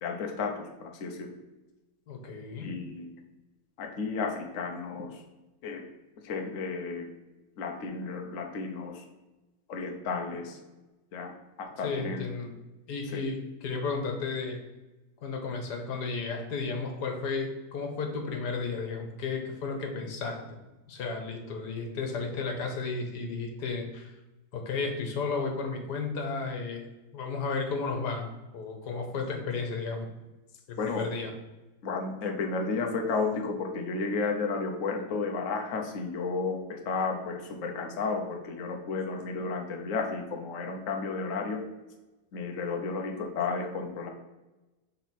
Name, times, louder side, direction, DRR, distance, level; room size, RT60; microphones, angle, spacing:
voice 1, 0.0-1.4 2.6-3.1 3.8-5.2 5.6-5.8 6.2-7.1 7.6-9.0 9.7-10.6 11.1-11.3 11.6-12.2 13.1-13.2 30.8-31.1 31.8-41.6 42.3-44.1, left 4 dB, 55° left, 2 dB, 1.1 m, -32 dB
voice 2, 2.1-2.7 11.8-12.5 12.9-14.6 15.2-20.6 20.9-24.1 24.5-26.9 27.1-30.1 30.7-31.3, left 4 dB, 80° left, 3 dB, 1.6 m, -33 dB
6.2 x 4.0 x 4.2 m, 1.1 s
omnidirectional pair, 1.8 m